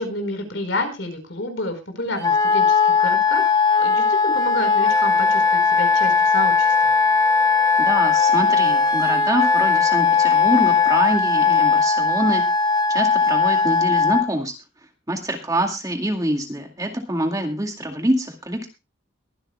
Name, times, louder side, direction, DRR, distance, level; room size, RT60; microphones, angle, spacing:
voice 1, 0.0-3.5 3.8-6.9, left 2 dB, 60° left, 6 dB, 4.7 m, -29 dB
Wind instrument woodwind instrument, 2.2-14.2, left 5 dB, 20° left, 1.2 m, -18 dB
voice 2, 7.9-12.4 12.9-14.5 15.1-18.7, right 1 dB, 15° right, 3 dB, 2.1 m, -25 dB
23.0 x 11.5 x 2.3 m, 0.27 s
head